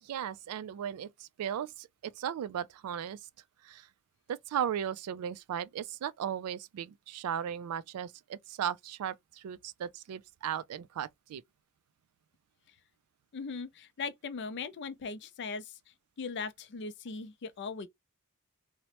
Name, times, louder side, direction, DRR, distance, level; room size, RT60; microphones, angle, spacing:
voice 1, 0.0-3.3 3.6-3.9 4.3-11.4, right 9 dB, 90° right, 0.3 m, -36 dB
voice 2, 13.3-15.8 16.2-17.9, left 4 dB, 55° left, 0.4 m, -39 dB
2.9 x 2.0 x 2.9 m
head